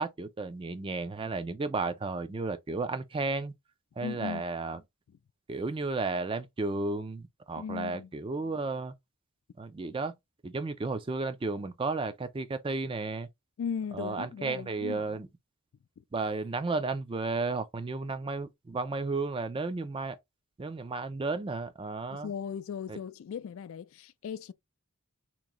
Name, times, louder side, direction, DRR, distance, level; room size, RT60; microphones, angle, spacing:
voice 1, 0.0-3.5 4.0-4.8 5.5-8.9 9.6-10.1 10.4-13.3 13.9-15.3 16.1-20.2 20.6-22.3 22.9-23.0, right 3 dB, 25° right, 0.4 m, -33 dB
voice 2, 4.0-4.4 7.6-8.1 13.6-15.2 16.0-16.1 22.1-24.5, left 7 dB, 65° left, 0.3 m, -38 dB
3.0 x 2.6 x 3.7 m
head